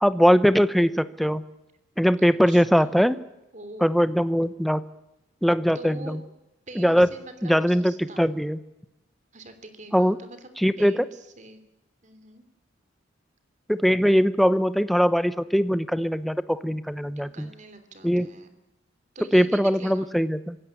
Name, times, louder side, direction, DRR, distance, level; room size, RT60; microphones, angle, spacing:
voice 1, 0.0-1.4 2.0-3.2 3.8-4.8 5.4-6.2 6.8-7.1 7.4-8.6 9.9-10.2 10.6-10.9 13.7-17.5 18.0-18.3 19.3-20.6, equal, ahead, 14 dB, 0.8 m, -21 dB
voice 2, 2.2-3.0 3.5-3.9 5.7-6.2 6.7-8.3 9.3-10.5 10.8-11.6 12.0-12.4 17.0-18.5 19.1-20.1, right 2 dB, 40° right, 10 dB, 3.1 m, -44 dB
25.5 x 17.0 x 8.5 m, 0.92 s
head